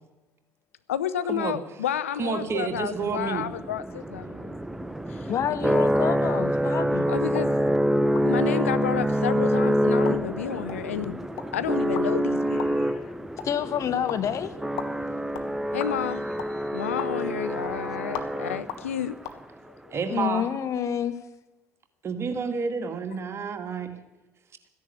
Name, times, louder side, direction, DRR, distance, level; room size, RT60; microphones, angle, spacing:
voice 1, 0.9-4.5 5.1-5.3 5.6-5.9 7.1-7.6 8.3-11.3 11.5-13.1 15.7-19.2, left 10 dB, 80° left, 0.5 m, -31 dB
voice 2, 2.2-3.4 19.9-20.5 22.0-23.9, right 5 dB, 40° right, 1.9 m, -29 dB
sound 1, 2.8-19.0, equal, 5° right, 0.7 m, -26 dB
voice 3, 5.3-7.1 13.4-14.5 20.1-21.1, left 9 dB, 45° left, 1.3 m, -28 dB
sound 2, 7.3-19.4, left 9 dB, 60° left, 1.4 m, -42 dB
15.0 x 10.5 x 8.2 m
figure-of-eight pair, 55°, 7 cm